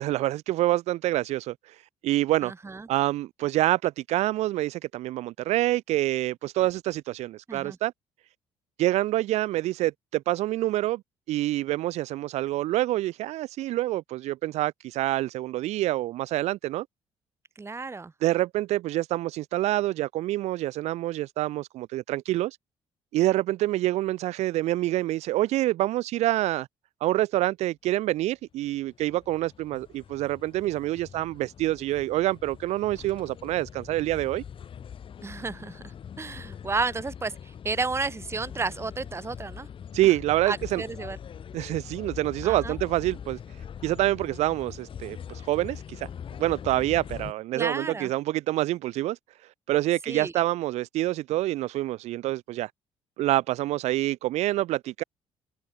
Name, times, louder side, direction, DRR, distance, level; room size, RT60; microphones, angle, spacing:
voice 1, 0.0-1.5 2.0-2.5 2.9-7.9 8.8-11.0 11.3-16.8 18.2-22.6 23.1-26.7 27.0-34.4 39.9-40.8 41.5-43.4 43.8-46.1 46.4-49.2 49.7-52.7 53.2-55.0, right 16 dB, 80° right, 1.6 m, -26 dB
voice 2, 2.4-2.9 7.5-7.8 17.6-18.1 35.2-39.7 40.5-41.2 42.4-42.7 47.5-48.1 50.1-50.3, right 4 dB, 25° right, 2.3 m, -32 dB
sound 1, 28.7-47.3, left 8 dB, 50° left, 4.2 m, -42 dB
cardioid pair, 85°, 11 cm